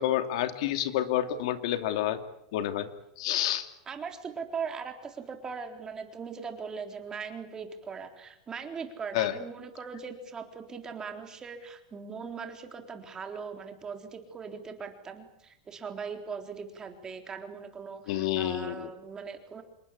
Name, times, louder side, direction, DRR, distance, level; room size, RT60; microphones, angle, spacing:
voice 1, 0.0-2.2 2.5-2.9 3.2-3.7 9.1-9.3 18.1-18.9, left 12 dB, 75° left, 9 dB, 2.6 m, -29 dB
voice 2, 3.9-19.6, right 5 dB, 20° right, 5 dB, 3.8 m, -40 dB
27.5 x 22.5 x 8.5 m, 0.81 s
supercardioid pair, 145°, 3 cm